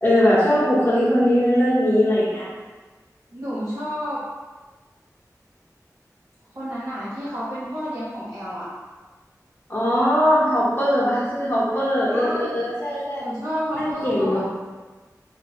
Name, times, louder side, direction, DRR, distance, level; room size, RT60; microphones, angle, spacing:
voice 1, 0.0-2.5 9.7-13.2 13.7-14.4, equal, 35° left, -8 dB, 0.7 m, -20 dB
voice 2, 3.3-4.2 6.5-8.7 12.1-12.6 13.2-14.4, equal, 55° right, -12 dB, 1.0 m, -30 dB
2.9 x 2.5 x 2.9 m, 1.3 s
wide cardioid pair, 45°, 7 cm